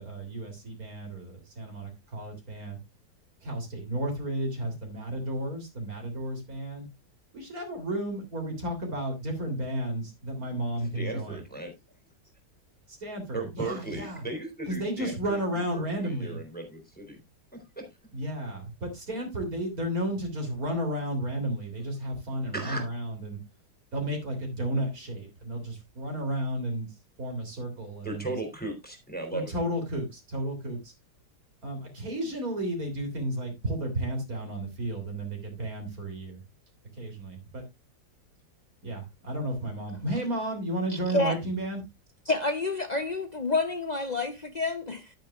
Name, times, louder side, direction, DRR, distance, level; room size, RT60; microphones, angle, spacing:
voice 1, 0.0-2.8 3.4-6.9 7.3-11.4 12.9-14.2 14.7-16.4 18.1-23.4 23.9-26.9 27.2-28.3 29.3-30.9 31.6-36.4 37.0-37.6 38.8-41.8, right 1 dB, 50° right, 3.7 m, -33 dB
voice 2, 10.8-11.7 13.3-17.2 17.5-17.9 22.5-22.9 28.0-29.5, right 2 dB, 5° left, 3.2 m, -36 dB
voice 3, 40.9-41.4 42.3-45.1, left 3 dB, 65° left, 0.4 m, -29 dB
11.0 x 10.0 x 2.4 m
omnidirectional pair, 2.0 m